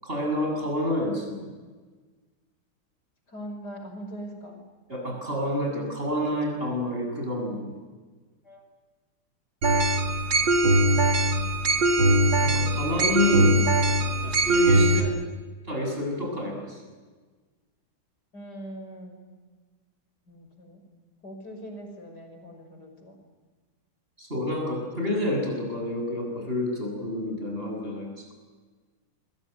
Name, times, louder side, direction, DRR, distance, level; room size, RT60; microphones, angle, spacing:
voice 1, 0.0-1.5 4.9-7.8 12.4-13.6 14.2-15.1 15.7-16.8 24.2-28.3, left 1 dB, 25° right, 1 dB, 7.9 m, -28 dB
voice 2, 3.3-4.6 8.4-8.6 11.2-11.9 14.0-14.3 15.0-15.3 18.3-19.2 20.3-20.8 21.2-23.2, right 1 dB, 50° left, 5 dB, 6.2 m, -42 dB
sound 1, 9.6-15.0, right 1 dB, 65° right, 3.1 m, -21 dB
27.0 x 23.0 x 9.4 m, 1.4 s
omnidirectional pair, 2.3 m